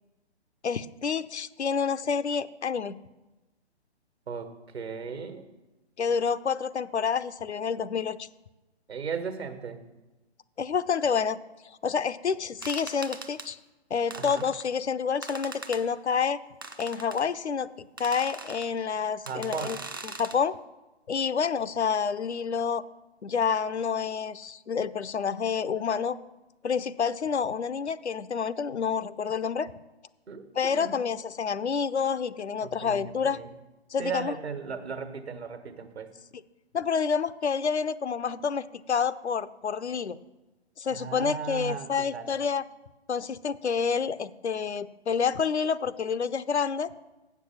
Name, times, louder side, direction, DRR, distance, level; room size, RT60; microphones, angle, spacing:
voice 1, 0.6-3.0 6.0-8.3 10.6-11.4 11.8-13.6 13.9-16.4 16.8-19.8 20.0-20.5 21.1-22.8 23.2-26.2 26.6-29.7 30.5-33.4 33.9-34.4 36.3-36.4 36.7-40.2 40.8-42.6 43.1-46.9, left 6 dB, 85° left, 14 dB, 0.6 m, -28 dB
voice 2, 4.3-5.5 8.9-9.8 14.1-14.5 19.3-19.8 30.3-30.9 32.6-33.5 34.0-36.1 40.9-42.4, right 6 dB, 70° right, 8 dB, 1.3 m, -36 dB
sound 1, 12.6-13.5 14.1-14.7 15.2-15.8 16.6-17.2 18.0-18.7 19.3-20.4, right 3 dB, 20° right, 0.3 m, -41 dB
7.8 x 6.8 x 7.2 m, 1.1 s
figure-of-eight pair, 135°, 33 cm